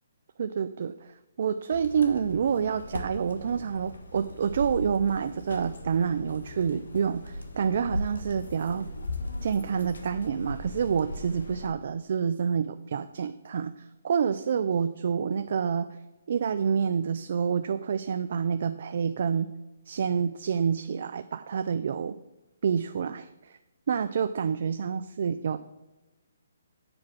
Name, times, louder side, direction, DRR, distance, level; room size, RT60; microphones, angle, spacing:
voice 1, 0.4-8.9 9.4-15.9 16.3-19.5 19.9-22.1 22.6-23.6 23.9-25.6, right 7 dB, 55° right, 10 dB, 0.3 m, -28 dB
sound 1, 1.7-11.7, left 1 dB, 85° left, 1.4 m, -38 dB
7.7 x 4.8 x 6.1 m, 1.1 s
hypercardioid pair, 155°, 0 cm